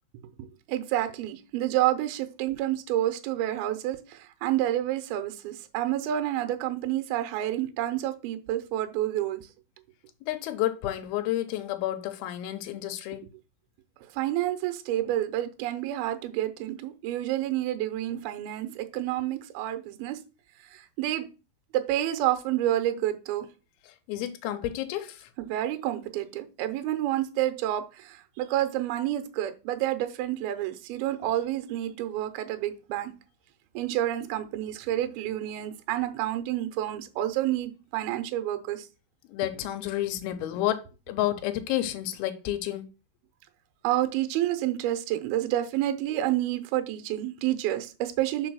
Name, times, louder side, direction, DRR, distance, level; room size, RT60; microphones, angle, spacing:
voice 1, 0.4-9.5 14.1-20.2 20.7-21.3 21.7-23.5 25.4-33.1 33.7-38.9 43.8-48.5, right 13 dB, 80° right, 2.6 m, -29 dB
voice 2, 10.3-13.2 23.9-25.3 39.3-42.9, left 13 dB, 80° left, 2.7 m, -30 dB
5.0 x 4.6 x 6.2 m
omnidirectional pair, 4.5 m